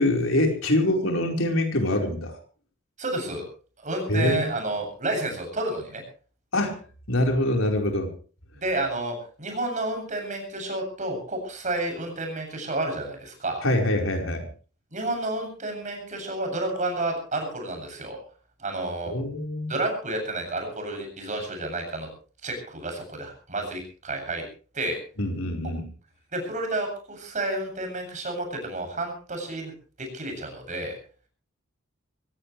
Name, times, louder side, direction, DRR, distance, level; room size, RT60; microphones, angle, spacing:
voice 1, 0.0-2.4 4.1-4.5 6.5-6.8 7.1-8.1 13.6-14.4 19.1-19.7 25.2-25.8, left 1 dB, 75° left, 3 dB, 4.6 m, -24 dB
voice 2, 3.0-3.4 3.8-6.0 8.6-13.6 14.9-18.2 18.6-19.1 19.7-22.1 22.4-24.4 24.7-25.0 26.3-29.7 30.0-30.9, right 2 dB, 40° right, 4 dB, 7.8 m, -30 dB
24.5 x 16.5 x 3.3 m, 0.39 s
head